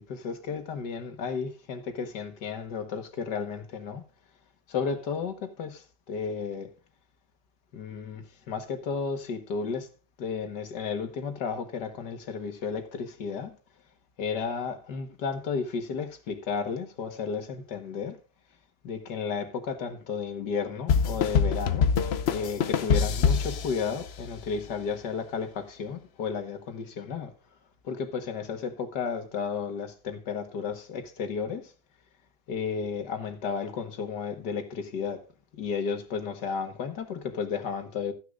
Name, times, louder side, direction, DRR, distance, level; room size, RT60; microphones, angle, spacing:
voice 1, 0.0-4.0 4.7-6.7 7.7-9.9 10.2-13.5 14.2-18.2 18.8-21.9 22.3-27.3 27.8-31.7 32.5-35.2 35.5-38.1, left 5 dB, 90° left, 2.1 m, -33 dB
sound 1, 20.9-24.5, left 6 dB, 55° left, 0.7 m, -25 dB
13.5 x 9.7 x 2.5 m
omnidirectional pair, 1.8 m